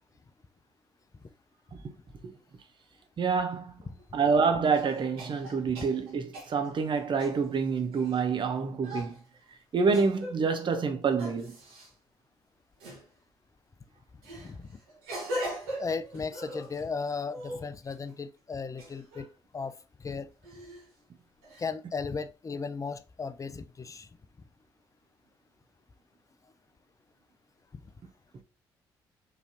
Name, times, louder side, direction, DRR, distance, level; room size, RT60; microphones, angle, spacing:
voice 1, 3.2-3.8 4.1-9.2 9.7-11.6, right 5 dB, 45° right, 1.0 m, -27 dB
sound 1, 4.0-4.1 4.7-8.2 8.8-9.2 9.9-10.5 11.2-11.9 12.8-13.1 14.2-16.8 17.2-18.1 18.8-19.3 20.4-20.9 21.4-21.6, equal, 75° right, 1.5 m, -40 dB
voice 2, 14.3-14.8 15.8-20.3 21.6-24.1, left 5 dB, 30° left, 0.6 m, -36 dB
4.8 x 3.2 x 2.9 m
hypercardioid pair, 45°, 11 cm